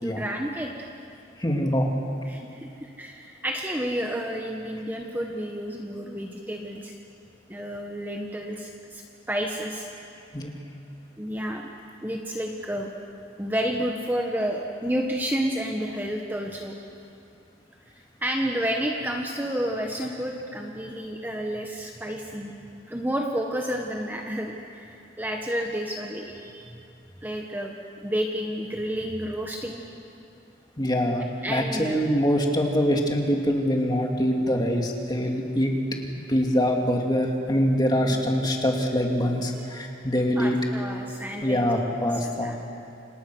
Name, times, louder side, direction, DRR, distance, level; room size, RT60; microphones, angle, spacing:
voice 1, 0.0-0.7 2.3-6.9 7.5-9.9 11.2-11.7 12.0-12.9 13.4-16.7 18.2-22.5 22.9-26.8 27.2-29.8 31.4-32.1 38.1-38.2 39.6-39.8 40.4-41.6 42.1-42.6, equal, 10° right, 1 dB, 1.4 m, -30 dB
voice 2, 1.4-1.9 10.3-10.5 30.8-35.7 36.3-40.6 41.4-42.5, equal, 20° left, 1 dB, 2.6 m, -24 dB
28.5 x 28.0 x 6.3 m, 2.6 s
head